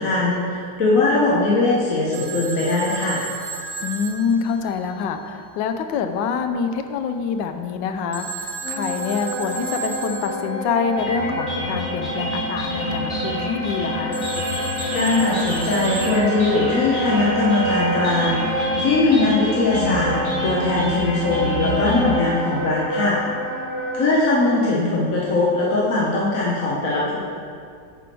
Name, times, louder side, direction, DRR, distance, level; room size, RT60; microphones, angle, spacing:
voice 1, 0.0-3.2 14.9-23.2 23.9-27.2, left 2 dB, 50° left, -6 dB, 1.3 m, -20 dB
Telephone, 2.1-5.2 8.1-10.7 14.1-16.8, right 5 dB, 85° right, 0.4 m, -34 dB
voice 2, 3.8-14.2 22.3-22.4, left 6 dB, 80° left, 7 dB, 1.3 m, -26 dB
Wind instrument woodwind instrument, 8.6-24.1, right 1 dB, 20° right, 2.1 m, -28 dB
sound 1, 11.0-22.0, left 1 dB, 30° left, 1.2 m, -28 dB
10.0 x 4.7 x 4.5 m, 2.3 s
omnidirectional pair, 2.0 m